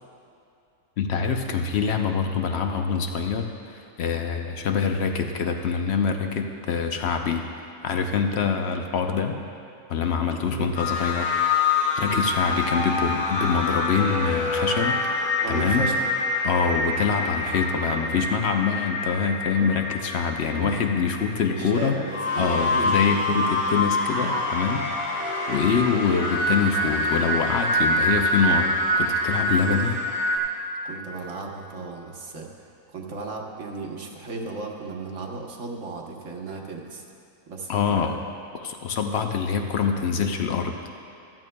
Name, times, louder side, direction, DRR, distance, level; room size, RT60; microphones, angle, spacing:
voice 1, 1.0-7.4 7.8-9.4 9.9-11.6 12.0-15.0 15.5-15.9 16.4-22.0 22.4-25.2 25.5-30.0 37.7-38.2 38.5-40.7, left 6 dB, 60° left, 5 dB, 0.8 m, -25 dB
voice 2, 10.4-10.8 12.0-12.2 12.5-12.6 15.4-16.1 20.5-20.8 21.5-22.9 30.8-37.0 37.5-38.1, right 4 dB, 60° right, 0 dB, 1.3 m, -35 dB
sound 1, 10.8-30.4, left 2 dB, 85° left, 1.8 m, -26 dB
15.0 x 12.5 x 2.2 m, 2.6 s
omnidirectional pair, 1.6 m